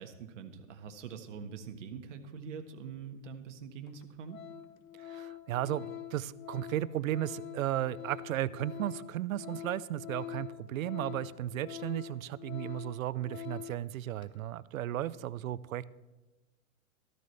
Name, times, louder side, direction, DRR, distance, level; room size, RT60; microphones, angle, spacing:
voice 1, 0.0-4.4, right 6 dB, 65° right, 6 dB, 1.5 m, -44 dB
Organ, 3.2-3.3 3.9-4.0 4.3-13.9 14.2-14.4, left 11 dB, 90° left, 1.0 m, -45 dB
voice 2, 5.0-15.9, right 12 dB, 80° right, 19 dB, 0.6 m, -35 dB
14.0 x 13.5 x 3.3 m, 1.1 s
hypercardioid pair, 165°, 40 cm